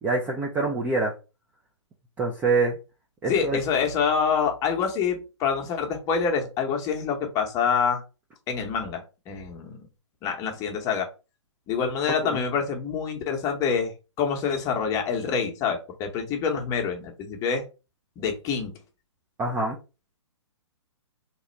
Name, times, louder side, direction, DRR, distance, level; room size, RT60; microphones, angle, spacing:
voice 1, 0.0-1.1 2.2-2.8 3.2-3.6 12.2-12.4 19.4-19.8, right 3 dB, 10° right, -1 dB, 0.4 m, -25 dB
voice 2, 3.3-8.0 8.5-9.8 10.2-11.1 11.7-17.6 18.2-18.7, left 6 dB, 20° left, 2 dB, 0.8 m, -26 dB
3.0 x 2.3 x 4.2 m, 0.31 s
hypercardioid pair, 135°, 16 cm